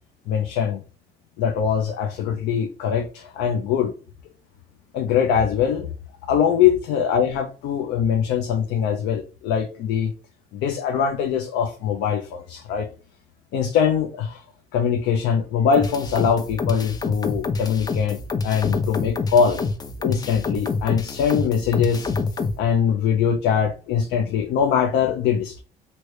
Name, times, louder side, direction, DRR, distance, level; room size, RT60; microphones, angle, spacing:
voice 1, 0.3-0.8 1.4-3.9 4.9-5.9 6.3-10.1 10.5-12.9 13.5-14.4 14.7-18.2 18.4-19.6 20.0-22.1 22.6-25.6, left 7 dB, 85° left, 5 dB, 0.5 m, -22 dB
sound 1, 15.7-22.6, left 4 dB, 25° left, 0.4 m, -27 dB
3.1 x 2.7 x 3.1 m, 0.36 s
cardioid pair, 110°, 17 cm